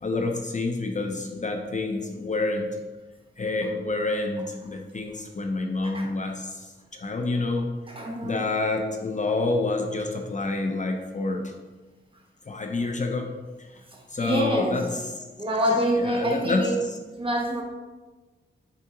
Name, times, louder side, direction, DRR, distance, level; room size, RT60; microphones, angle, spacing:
voice 1, 0.0-2.8 3.4-7.8 8.2-11.5 12.5-13.8 14.1-15.0 16.0-16.7, left 3 dB, 35° left, 3 dB, 0.5 m, -28 dB
voice 2, 7.9-8.5 13.9-14.8 15.4-16.8 17.2-17.6, equal, 25° right, 0 dB, 1.1 m, -26 dB
5.6 x 4.7 x 3.8 m, 1.3 s
wide cardioid pair, 105°, 21 cm